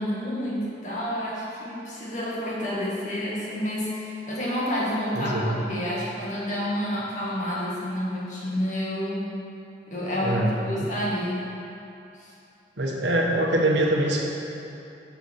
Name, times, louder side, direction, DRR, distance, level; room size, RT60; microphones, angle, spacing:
voice 1, 0.0-9.4 9.9-11.4 12.2-12.3, equal, 40° left, -6 dB, 1.9 m, -29 dB
voice 2, 5.1-5.6 10.2-10.9 12.8-14.2, right 1 dB, 75° right, -1 dB, 1.2 m, -24 dB
7.1 x 7.0 x 6.4 m, 2.8 s
head